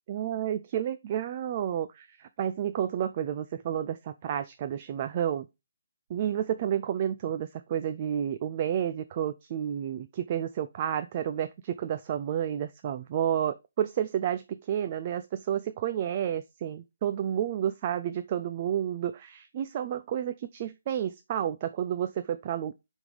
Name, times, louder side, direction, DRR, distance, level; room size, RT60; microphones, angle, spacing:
voice 1, 0.1-5.5 6.1-22.7, right 10 dB, 25° right, 0.3 m, -31 dB
6.0 x 3.6 x 4.8 m
hypercardioid pair, 175°, 0 cm